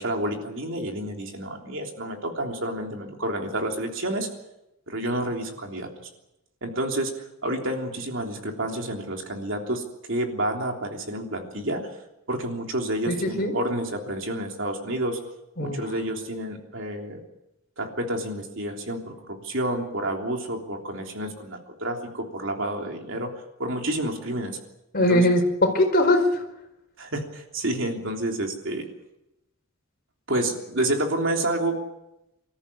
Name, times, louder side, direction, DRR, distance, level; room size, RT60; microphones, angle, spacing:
voice 1, 0.0-4.3 4.9-6.1 6.6-7.1 7.4-9.8 10.1-11.8 12.3-15.2 15.6-17.2 17.8-23.3 23.6-24.6 25.1-25.3 27.0-28.8 30.3-31.8, right 1 dB, 55° right, 2 dB, 3.4 m, -29 dB
voice 2, 13.1-13.6 15.6-15.8 24.9-26.4, left 1 dB, 45° left, 4 dB, 4.5 m, -21 dB
25.0 x 14.0 x 9.8 m, 0.90 s
head